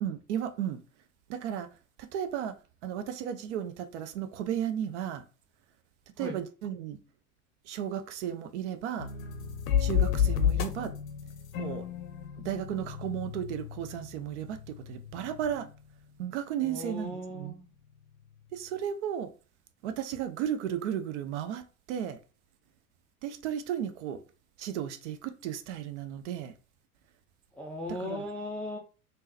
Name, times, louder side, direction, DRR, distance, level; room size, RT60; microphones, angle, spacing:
voice 1, 0.0-0.8 1.3-1.7 2.0-2.5 2.8-5.2 6.2-7.0 7.6-9.1 9.8-10.9 11.6-11.9 12.4-15.7 16.2-17.6 18.5-19.3 19.8-22.2 23.2-24.2 24.6-26.5 27.9-28.3, right 10 dB, 50° right, 0.6 m, -34 dB
sound 1, 9.0-15.8, left 8 dB, 60° left, 0.6 m, -32 dB
voice 2, 16.6-17.6 27.6-28.8, left 1 dB, 5° left, 0.3 m, -37 dB
3.6 x 2.7 x 2.6 m
figure-of-eight pair, 80°, 45 cm